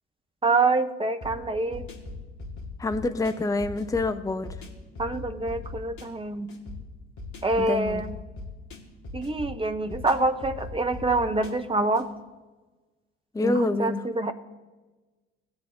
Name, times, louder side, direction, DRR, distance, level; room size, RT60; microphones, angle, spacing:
voice 1, 0.4-1.9 5.0-6.5 7.4-8.2 9.1-12.1 13.4-14.3, right 2 dB, 15° right, 8 dB, 1.0 m, -26 dB
sound 1, 1.2-12.1, left 3 dB, 55° left, 2.0 m, -41 dB
voice 2, 2.8-4.5 7.6-8.0 13.3-14.0, left 2 dB, 10° left, 8 dB, 0.7 m, -26 dB
18.0 x 8.0 x 2.7 m, 1.2 s
figure-of-eight pair, 50°, 36 cm